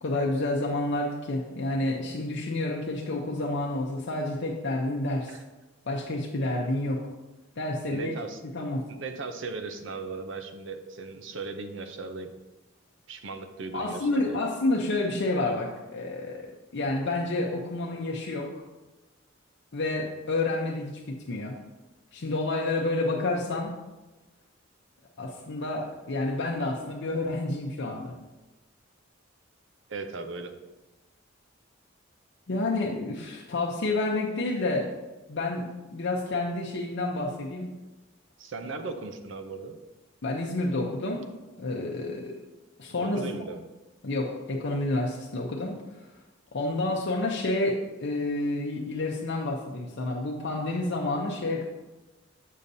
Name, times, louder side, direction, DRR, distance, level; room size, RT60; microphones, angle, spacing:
voice 1, 0.0-5.3 5.9-7.1 7.6-8.1 8.5-8.8 13.7-18.6 19.7-21.6 22.1-23.8 25.2-28.1 32.5-34.9 35.3-37.8 40.2-41.3 41.6-42.4 42.8-43.2 44.0-45.8 46.5-51.7, left 2 dB, 60° left, -1 dB, 0.7 m, -29 dB
voice 2, 7.9-8.4 8.9-12.3 13.1-14.4 29.9-30.5 38.4-39.8 43.0-43.6, right 3 dB, 65° right, 7 dB, 0.6 m, -37 dB
7.3 x 6.7 x 2.7 m, 1.1 s
head